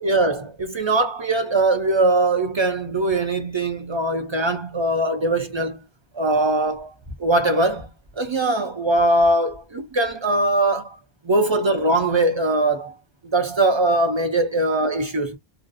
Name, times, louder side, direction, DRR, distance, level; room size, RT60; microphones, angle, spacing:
voice 1, 0.0-5.8 6.1-6.9 7.2-7.9 8.2-11.0 11.2-12.9 13.3-15.4, right 2 dB, 45° right, 0.3 m, -21 dB
2.6 x 2.0 x 2.4 m
omnidirectional pair, 1.1 m